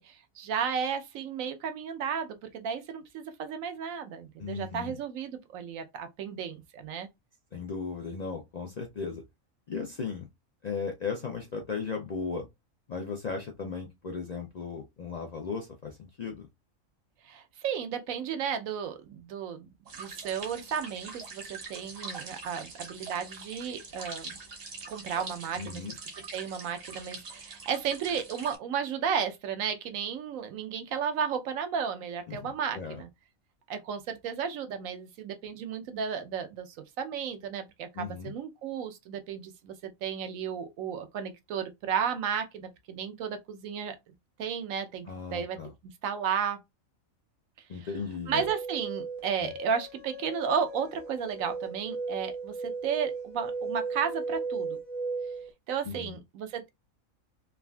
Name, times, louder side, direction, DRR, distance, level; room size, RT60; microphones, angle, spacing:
voice 1, 0.0-7.1 17.2-19.7 20.0-24.3 24.9-25.8 26.3-33.1 33.7-44.0 44.4-45.6 46.0-46.6 48.3-54.8 55.7-56.7, right 7 dB, 80° right, 1.0 m, -33 dB
voice 2, 4.4-5.0 7.5-9.2 9.7-10.3 10.6-12.5 12.9-16.5 25.6-25.9 32.3-33.0 37.9-38.3 45.1-45.7 47.7-48.4 49.4-49.5 55.9-56.2, left 5 dB, 70° left, 0.4 m, -36 dB
sound 1, 19.9-28.6, right 4 dB, 50° right, 0.9 m, -43 dB
sound 2, 48.3-55.5, right 4 dB, 90° left, 1.3 m, -36 dB
3.5 x 2.4 x 2.2 m
omnidirectional pair, 1.4 m